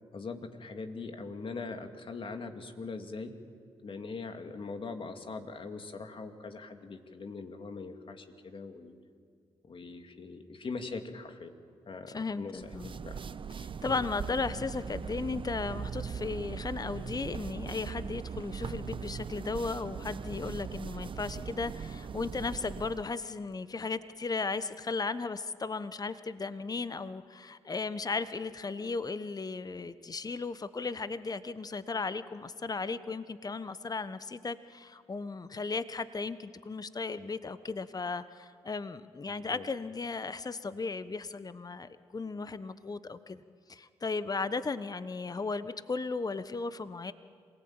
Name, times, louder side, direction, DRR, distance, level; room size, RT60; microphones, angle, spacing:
voice 1, 0.1-3.3 3.8-8.9 9.6-11.5 11.9-13.2 13.9-14.0 39.3-39.7, left 4 dB, 50° left, 6 dB, 2.6 m, -41 dB
voice 2, 12.1-12.9 13.6-43.4 43.7-47.1, left 4 dB, 35° left, 13 dB, 1.1 m, -36 dB
sound 1, 12.6-23.1, right 6 dB, 50° right, 0.9 m, -40 dB
27.0 x 18.0 x 8.9 m, 2.1 s
hypercardioid pair, 45°, 11 cm